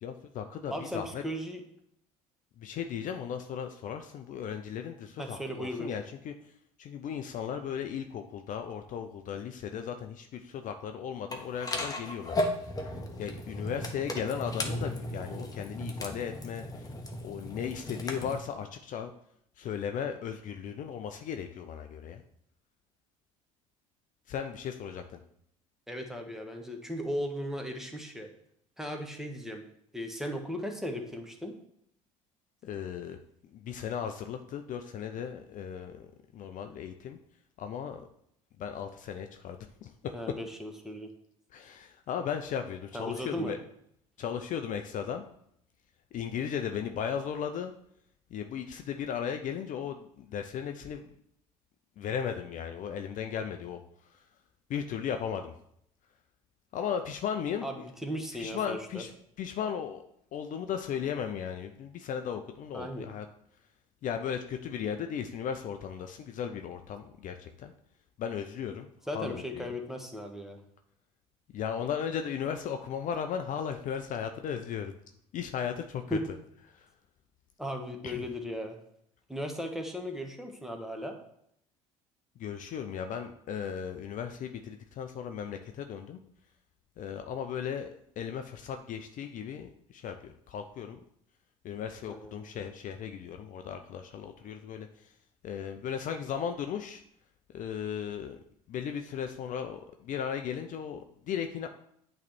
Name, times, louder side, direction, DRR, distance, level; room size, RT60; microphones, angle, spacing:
voice 1, 0.0-1.2 2.6-6.3 6.8-12.4 12.8-12.9 13.2-16.9 17.2-19.1 19.6-22.2 24.3-25.2 32.6-33.2 33.5-36.1 36.3-37.2 37.6-38.1 38.6-40.3 41.5-43.6 44.2-45.2 46.1-47.7 48.3-51.0 52.0-53.8 54.1-54.2 54.7-55.5 56.7-57.9 58.4-59.1 59.4-60.0 60.3-63.3 64.0-67.7 68.2-68.9 69.1-69.7 71.5-74.9 75.3-76.2 76.7-76.9 78.0-78.3 82.4-86.2 87.0-87.9 88.2-91.0 91.6-95.1 95.4-97.0 97.5-98.4 98.7-101.7, left 8 dB, 50° left, 6 dB, 0.5 m, -36 dB
voice 2, 0.7-1.6 5.2-5.9 25.9-28.3 28.8-29.6 29.9-31.5 40.1-41.1 42.9-43.5 57.6-59.0 62.7-63.1 69.1-70.6 76.1-76.2 77.6-78.8 79.3-81.2 92.1-92.5, equal, ahead, 3 dB, 1.2 m, -36 dB
sound 1, 11.3-18.4, left 1 dB, 20° left, 1.1 m, -36 dB
8.3 x 3.2 x 4.3 m, 0.72 s
hypercardioid pair, 65°, 18 cm